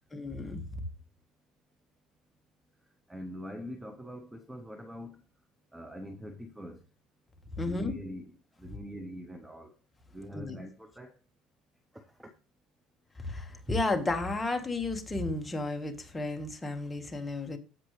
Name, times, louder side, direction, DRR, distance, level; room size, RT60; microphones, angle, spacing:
voice 1, 0.1-0.6 7.6-7.9 10.3-10.6 13.2-17.6, left 2 dB, 10° left, 1.5 m, -33 dB
voice 2, 3.1-5.2 5.7-6.8 7.6-9.7 10.1-11.2 11.9-12.3, equal, 5° right, 0.9 m, -43 dB
15.0 x 5.3 x 3.2 m
cardioid pair, 145°, 0 cm